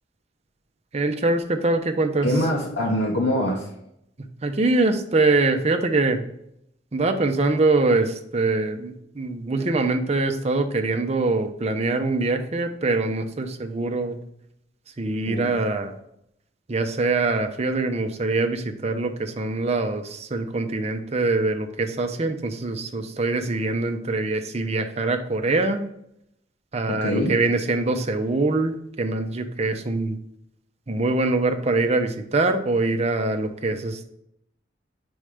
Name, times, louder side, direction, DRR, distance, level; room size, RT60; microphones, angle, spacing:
voice 1, 0.9-2.3 4.4-6.2 6.9-14.2 15.0-15.9 16.7-25.9 26.7-30.2 30.9-34.0, right 2 dB, 35° right, 6 dB, 0.6 m, -23 dB
voice 2, 2.2-3.7 15.2-15.5 26.9-27.3, equal, 80° left, -2 dB, 0.9 m, -24 dB
4.8 x 4.3 x 5.0 m, 0.76 s
head